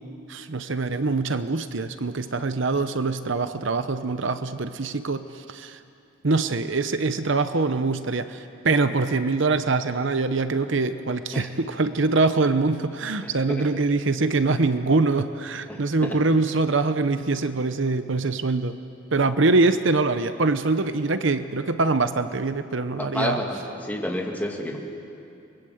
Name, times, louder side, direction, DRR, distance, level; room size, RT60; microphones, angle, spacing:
voice 1, 0.3-5.8 6.2-18.8 19.1-23.4, right 3 dB, 60° right, 10 dB, 0.8 m, -24 dB
voice 2, 13.2-13.7 15.7-16.2 23.0-24.8, left 1 dB, 10° left, 0 dB, 2.6 m, -30 dB
29.0 x 22.0 x 8.0 m, 2.6 s
head